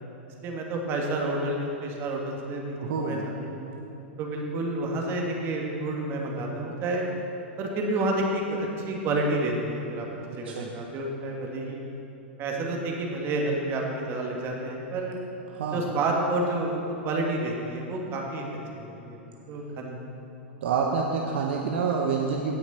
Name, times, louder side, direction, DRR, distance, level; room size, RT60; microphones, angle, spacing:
voice 1, 0.4-3.8 4.2-7.0 7.6-11.8 12.4-15.2 15.7-18.4 18.8-19.2 19.5-20.0, right 2 dB, 40° right, 0 dB, 1.9 m, -29 dB
voice 2, 2.8-3.3 10.4-10.7 15.5-15.8 20.6-22.6, right 5 dB, 65° right, 1 dB, 0.8 m, -27 dB
17.0 x 6.0 x 4.3 m, 3.0 s
hypercardioid pair, 105°, 6 cm